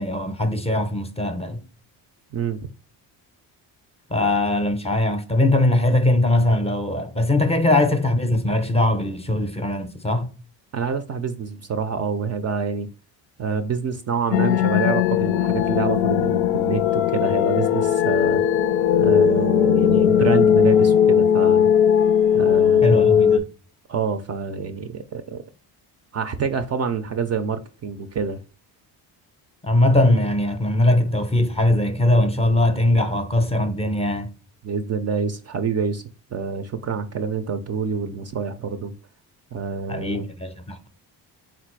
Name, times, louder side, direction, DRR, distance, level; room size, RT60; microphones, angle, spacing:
voice 1, 0.0-1.6 4.1-10.3 22.8-23.5 29.6-34.3 39.9-40.9, left 1 dB, 15° left, 0.6 m, -21 dB
voice 2, 10.7-12.9 13.4-18.4 19.0-21.7 22.3-23.2 23.9-25.4 26.1-28.4 34.6-36.0 36.3-38.9 39.5-40.3, right 5 dB, 40° right, 0.4 m, -27 dB
sound 1, 14.3-23.4, left 9 dB, 75° left, 0.5 m, -18 dB
3.9 x 2.5 x 4.5 m
cardioid pair, 90°, 43 cm